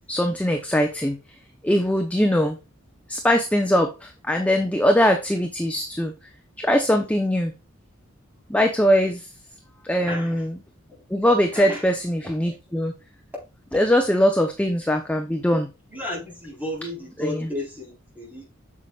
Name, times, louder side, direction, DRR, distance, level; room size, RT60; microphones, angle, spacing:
voice 1, 0.1-1.2 1.6-2.6 3.1-6.1 6.6-7.5 8.5-9.3 9.8-10.6 11.1-12.9 13.7-15.7 17.2-17.5, equal, 5° left, 0.7 m, -21 dB
voice 2, 10.0-10.4 11.5-11.8 12.2-12.6 13.3-13.4 15.9-18.5, left 1 dB, 10° right, 4.1 m, -33 dB
8.6 x 6.9 x 2.4 m
head